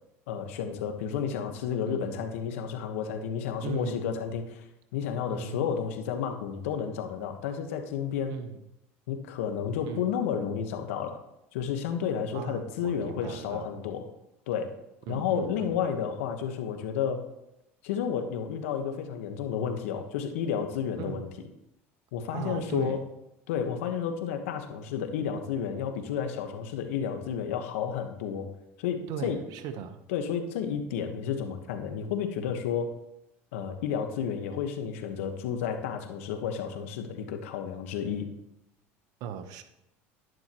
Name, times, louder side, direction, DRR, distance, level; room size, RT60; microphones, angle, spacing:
voice 1, 0.3-4.6 4.9-8.3 9.1-11.2 11.5-14.0 14.5-14.7 15.1-17.2 17.8-21.3 22.1-23.0 23.5-28.5 28.8-29.4 30.1-32.9 33.5-38.3, left 7 dB, 80° left, 6 dB, 1.3 m, -31 dB
voice 2, 1.9-2.3 3.6-4.0 5.3-5.6 8.3-8.6 9.9-10.1 12.3-13.7 15.1-15.8 21.0-21.3 22.3-23.0 29.1-30.0 39.2-39.6, right 8 dB, 60° right, 9 dB, 1.0 m, -38 dB
11.0 x 10.5 x 3.1 m, 0.88 s
supercardioid pair, 100°, 7 cm